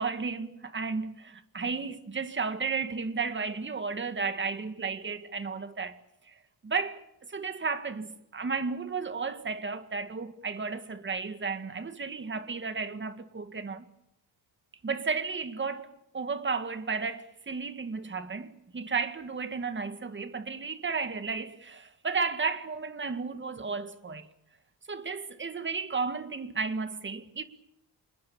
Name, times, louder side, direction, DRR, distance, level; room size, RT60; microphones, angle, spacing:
voice 1, 0.0-6.0 6.3-6.4 6.6-13.8 14.8-24.3 24.9-27.4, right 4 dB, 25° right, 2.0 m, -33 dB
27.5 x 21.5 x 7.1 m
cardioid pair, 140°, 42 cm